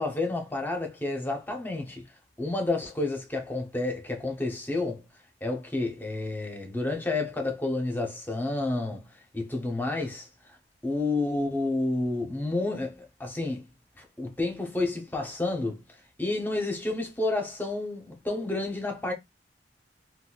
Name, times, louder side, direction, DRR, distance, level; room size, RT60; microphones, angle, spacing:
voice 1, 0.0-2.0 2.4-5.0 5.4-9.0 9.3-10.3 10.8-13.6 14.0-15.8 16.2-19.1, left 2 dB, 10° left, 0.8 m, -30 dB
3.9 x 2.3 x 2.3 m
head